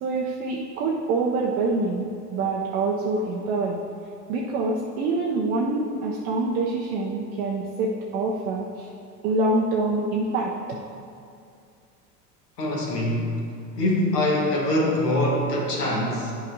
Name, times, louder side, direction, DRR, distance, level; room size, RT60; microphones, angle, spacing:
voice 1, 0.0-3.8 4.3-8.9 9.2-10.8, right 3 dB, 20° right, -2 dB, 0.3 m, -26 dB
voice 2, 12.6-13.4 13.8-16.3, left 1 dB, 70° left, -2 dB, 1.4 m, -23 dB
10.5 x 4.9 x 2.6 m, 2.4 s
figure-of-eight pair, 80°, 48 cm